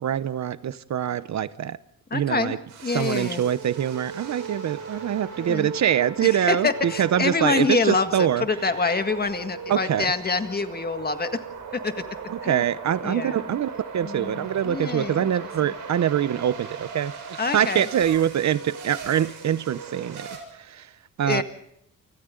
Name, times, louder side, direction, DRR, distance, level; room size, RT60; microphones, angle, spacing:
voice 1, 0.0-1.8 2.1-2.6 2.9-8.4 9.7-10.1 12.3-20.3 20.6-20.9 21.2-21.4, right 10 dB, 60° right, 0.8 m, -24 dB
voice 2, 2.1-3.4 5.4-5.7 6.2-11.4 11.8-11.9 12.4-12.6 13.0-13.6 14.0-15.5 17.4-17.9 21.2-21.4, left 4 dB, 30° left, 1.8 m, -26 dB
sound 1, 2.7-20.4, right 5 dB, 80° right, 6.5 m, -38 dB
29.0 x 25.0 x 3.9 m
cardioid pair, 110°, 31 cm